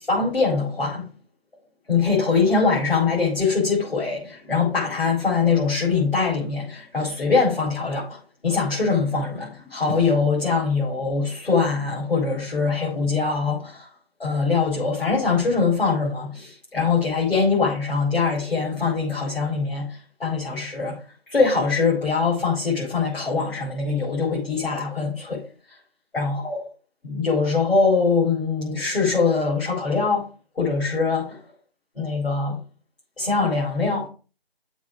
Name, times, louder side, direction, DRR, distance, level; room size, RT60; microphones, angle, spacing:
voice 1, 0.1-1.0 1.9-13.9 14.2-19.9 20.2-21.0 21.3-25.4 26.1-26.6 27.0-30.3 30.6-31.4 31.9-32.6 33.2-34.1, left 4 dB, 70° left, 5.0 m, -22 dB
7.3 x 4.6 x 7.0 m
figure-of-eight pair, 155°, 31 cm